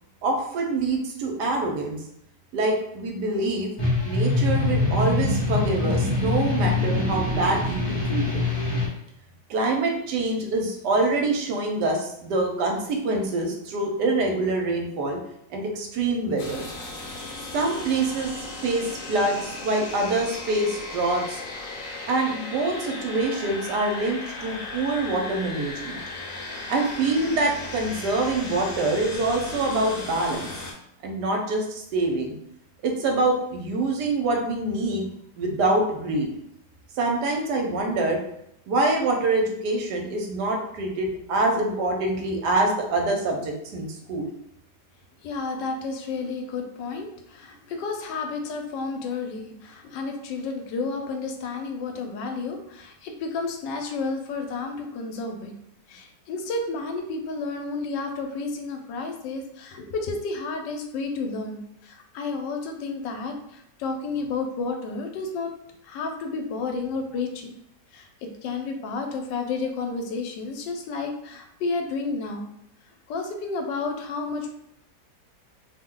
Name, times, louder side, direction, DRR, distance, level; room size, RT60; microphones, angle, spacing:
voice 1, 0.2-2.0 2.5-3.7 4.0-8.4 9.5-15.2 15.5-16.7 17.5-18.4 18.6-21.4 22.1-26.0 26.7-30.5 31.0-32.3 32.8-35.1 35.4-36.3 37.0-38.2 38.7-44.3, right 2 dB, 75° right, 1 dB, 1.2 m, -25 dB
sound 1, 3.8-8.9, left 2 dB, 30° left, 0.5 m, -24 dB
sound 2, 16.4-30.7, left 2 dB, 65° left, 1.1 m, -36 dB
voice 2, 45.2-55.5 55.9-65.5 65.8-67.5 67.9-72.5 73.1-74.6, left 4 dB, 85° left, 4 dB, 1.2 m, -31 dB
2.9 x 2.1 x 3.6 m, 0.76 s
omnidirectional pair, 1.9 m